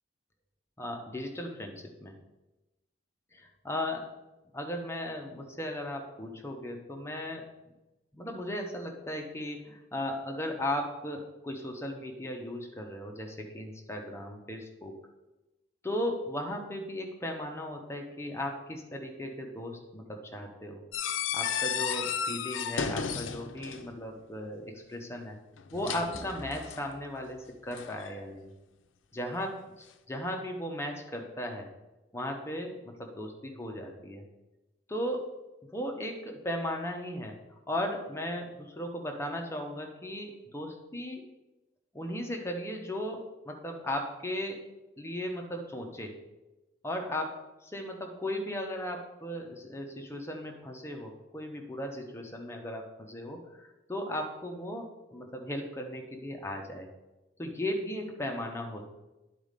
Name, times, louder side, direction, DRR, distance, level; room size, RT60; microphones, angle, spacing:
voice 1, 0.8-2.1 3.3-4.1 4.5-7.4 8.1-15.0 15.8-20.8 21.3-25.4 25.7-28.5 29.1-29.6 30.1-31.7 32.1-34.2 34.9-35.3 35.7-37.3 37.7-41.2 41.9-44.6 45.0-46.2 46.8-47.3 47.6-56.9 57.4-58.8, left 1 dB, 15° left, 2 dB, 0.8 m, -36 dB
sound 1, 20.9-24.0 25.6-26.9 27.7-28.2, left 7 dB, 85° left, 0.5 m, -34 dB
sound 2, 26.1-28.8, right 1 dB, 5° right, 0.4 m, -50 dB
10.0 x 4.2 x 5.1 m, 1.0 s
head